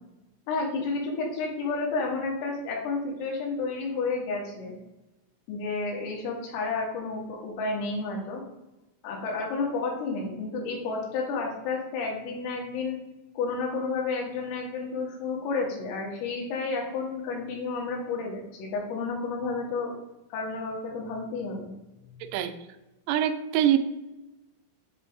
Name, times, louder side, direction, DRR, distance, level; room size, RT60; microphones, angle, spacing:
voice 1, 0.5-4.7 5.5-8.4 9.0-13.0 13.4-20.0 20.3-21.7, left 4 dB, 80° left, -2 dB, 4.0 m, -31 dB
voice 2, 22.2-22.5 23.1-23.8, right 11 dB, 90° right, 8 dB, 3.3 m, -24 dB
9.1 x 3.4 x 3.5 m, 1.0 s
omnidirectional pair, 5.9 m